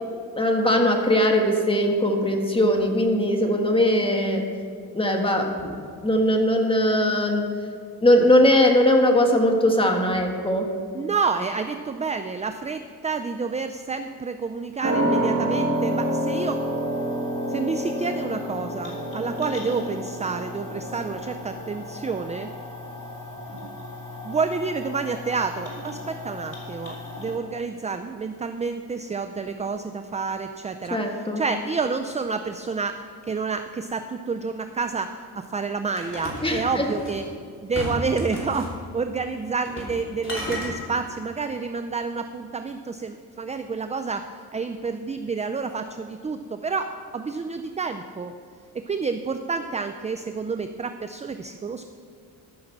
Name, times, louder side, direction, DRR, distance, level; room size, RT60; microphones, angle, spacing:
voice 1, 0.4-4.4 4.9-5.8 6.0-7.4 8.0-10.7 30.9-31.4 36.4-36.9, left 1 dB, 15° left, 2 dB, 1.5 m, -20 dB
voice 2, 10.9-16.6 17.5-22.5 24.2-37.2 37.6-44.2 44.5-48.3 48.7-51.9, right 4 dB, 20° right, 8 dB, 0.4 m, -29 dB
sound 1, 14.8-21.9 22.2-22.3, right 1 dB, 35° right, 3.0 m, -27 dB
sound 2, 15.7-27.4, left 2 dB, 55° left, 3.4 m, -39 dB
sound 3, 36.0-37.2 37.7-38.7 39.6-40.0 40.2-40.7, left 1 dB, 35° left, 3.0 m, -33 dB
13.5 x 6.4 x 5.9 m, 2.1 s
cardioid pair, 95°, 37 cm